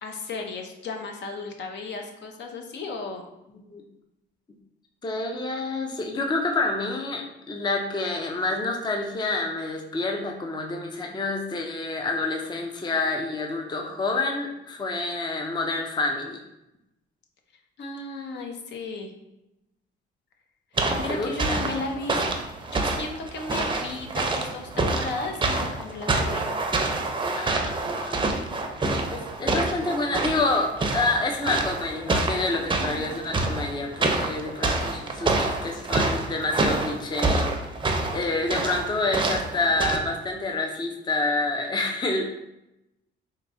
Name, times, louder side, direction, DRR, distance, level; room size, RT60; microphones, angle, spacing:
voice 1, 0.0-3.2 17.8-19.1 20.7-22.2 22.7-26.5 32.9-33.1, left 3 dB, 65° left, 3 dB, 0.7 m, -35 dB
voice 2, 5.0-16.4 20.9-21.6 27.4-28.3 29.1-37.5 38.1-42.3, left 2 dB, 20° left, 2 dB, 0.5 m, -28 dB
sound 1, 20.8-40.0, right 2 dB, 25° right, 0.5 m, -27 dB
4.4 x 2.7 x 2.6 m, 0.90 s
cardioid pair, 90°, 20 cm